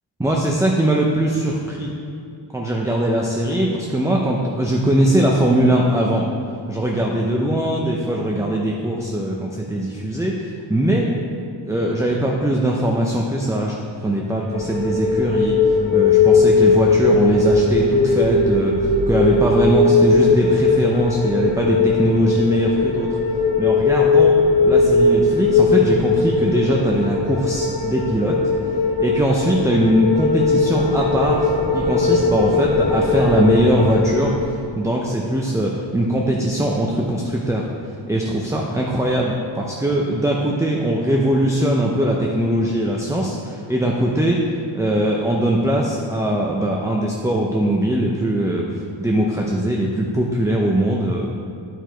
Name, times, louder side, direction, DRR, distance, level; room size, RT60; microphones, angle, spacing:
voice 1, 0.2-1.9 2.5-6.3 6.7-11.1 11.7-13.7 14.0-23.2 23.6-24.4 24.6-28.4 28.7-37.7 38.1-48.6 49.0-51.3, right 1 dB, 5° right, -2 dB, 0.5 m, -21 dB
sound 1, 14.5-34.4, left 4 dB, 50° left, 1.3 m, -18 dB
9.1 x 4.8 x 4.5 m, 2.5 s
wide cardioid pair, 120°, 45 cm